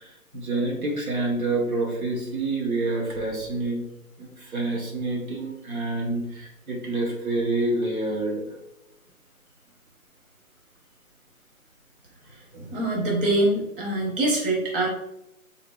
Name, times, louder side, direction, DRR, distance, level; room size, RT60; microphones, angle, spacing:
voice 1, 0.3-3.8 4.2-8.4, right 2 dB, 75° right, 0 dB, 1.3 m, -27 dB
voice 2, 12.7-14.9, right 1 dB, 40° right, -3 dB, 1.1 m, -24 dB
4.2 x 3.8 x 2.3 m, 0.88 s
hypercardioid pair, 165°, 43 cm